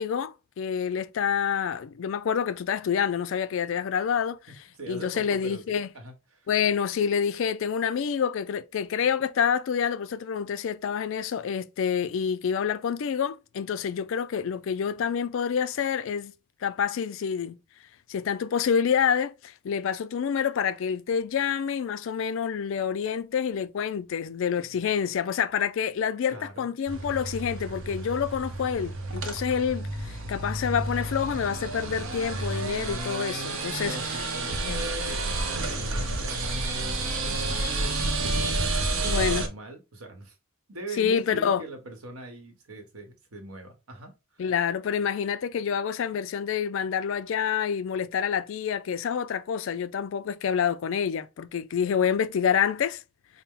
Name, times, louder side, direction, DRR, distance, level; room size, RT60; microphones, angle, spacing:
voice 1, 0.0-4.4 4.9-5.9 6.5-16.3 16.6-17.6 18.1-34.0 34.6-34.8 39.0-39.5 41.0-41.6 44.4-53.0, left 7 dB, 60° left, 0.3 m, -27 dB
voice 2, 4.7-6.5 24.6-24.8 26.3-26.7 33.8-40.4 40.7-44.4, right 2 dB, 80° right, 1.0 m, -42 dB
sound 1, 26.9-39.5, right 2 dB, 65° right, 0.7 m, -30 dB
4.2 x 2.0 x 3.6 m
head